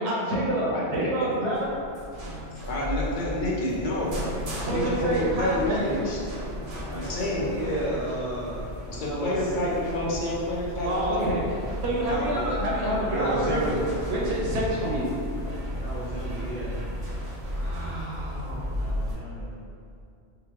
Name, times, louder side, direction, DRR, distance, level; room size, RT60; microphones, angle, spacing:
voice 1, 0.0-1.7 4.6-5.9 10.8-11.3 11.8-13.8 14.1-15.1 17.5-18.7, right 1 dB, 70° right, -5 dB, 0.9 m, -28 dB
voice 2, 0.7-1.3 2.7-4.2 4.7-6.3 6.9-7.5 8.9-11.3, left 1 dB, 55° left, -5 dB, 0.6 m, -28 dB
sound 1, 1.5-19.1, equal, 40° right, 0.6 m, -35 dB
sound 2, 2.9-17.9, equal, 85° left, 1.1 m, -45 dB
voice 3, 6.8-9.5 12.0-12.5 13.0-13.8 15.7-16.9 18.7-19.5, right 1 dB, 25° left, -10 dB, 0.9 m, -33 dB
3.6 x 2.2 x 2.9 m, 2.4 s
omnidirectional pair, 1.2 m